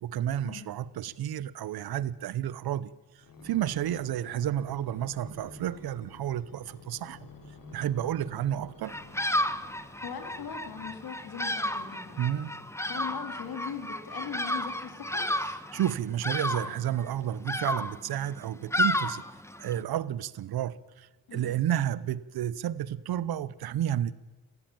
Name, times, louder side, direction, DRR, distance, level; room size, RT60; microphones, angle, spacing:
voice 1, 0.0-7.3 7.7-9.0 12.2-12.6 15.7-19.2 19.6-24.1, right 11 dB, 90° right, 0.7 m, -31 dB
sound 1, 3.2-11.2 11.8-13.0 13.7-13.8, left 3 dB, 65° left, 3.7 m, -50 dB
Bird vocalization bird call bird song, 8.8-19.8, left 1 dB, 5° left, 1.4 m, -32 dB
voice 2, 9.8-12.3 12.9-15.3 21.3-21.5, left 7 dB, 85° left, 3.2 m, -40 dB
22.5 x 15.0 x 8.8 m
supercardioid pair, 45°, 36 cm